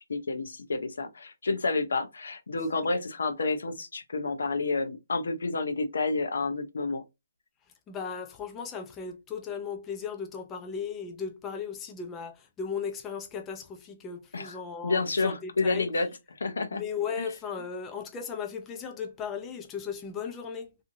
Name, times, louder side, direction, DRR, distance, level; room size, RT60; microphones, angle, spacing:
voice 1, 0.1-7.0 14.3-14.5 14.8-16.8, left 3 dB, 75° left, 0.7 m, -29 dB
voice 2, 7.9-15.9 16.7-20.8, left 6 dB, 10° left, 0.4 m, -36 dB
2.7 x 2.6 x 2.6 m
hypercardioid pair, 170°, 0 cm